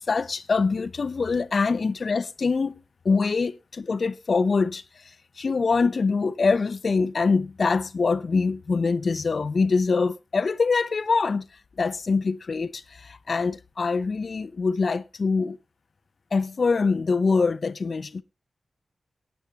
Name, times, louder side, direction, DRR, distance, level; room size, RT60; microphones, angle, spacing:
voice 1, 0.1-2.8 3.0-5.0 5.4-11.4 11.8-15.6 16.3-18.2, left 4 dB, 60° left, 0.7 m, -24 dB
17.5 x 9.7 x 2.9 m
cardioid pair, 55°, 0 cm